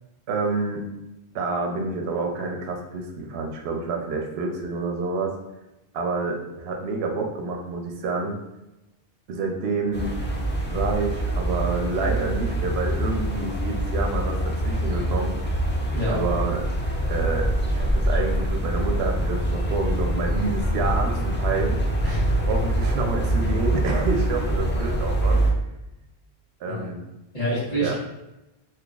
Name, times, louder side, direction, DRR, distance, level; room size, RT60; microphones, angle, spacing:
voice 1, 0.3-0.8 1.3-5.3 5.9-8.4 9.3-10.1 10.6-15.3 16.1-16.7 17.0-21.8 22.5-25.4 26.6-27.0 27.8-27.9, right 3 dB, 80° right, 2 dB, 0.8 m, -28 dB
sound 1, 9.9-25.5, right 1 dB, 20° left, 0.3 m, -25 dB
voice 2, 15.9-16.3 22.0-22.3 24.5-24.6 26.7-26.9 27.3-27.9, right 1 dB, 40° left, -13 dB, 1.3 m, -27 dB
3.8 x 2.8 x 2.3 m, 0.95 s
omnidirectional pair, 1.0 m